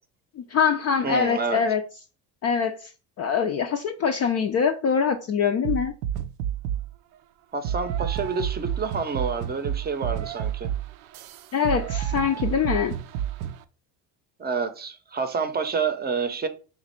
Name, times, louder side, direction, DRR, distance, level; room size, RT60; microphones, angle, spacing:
voice 1, 0.4-1.8 2.4-2.9 3.2-5.9 11.5-12.9, left 6 dB, 35° left, 0.4 m, -24 dB
voice 2, 1.0-1.6 7.5-10.7 14.4-16.5, right 5 dB, 20° right, 0.6 m, -28 dB
sound 1, 5.6-6.9 7.6-13.6, right 10 dB, 70° right, 0.5 m, -30 dB
3.1 x 2.5 x 4.3 m
supercardioid pair, 80°, 43 cm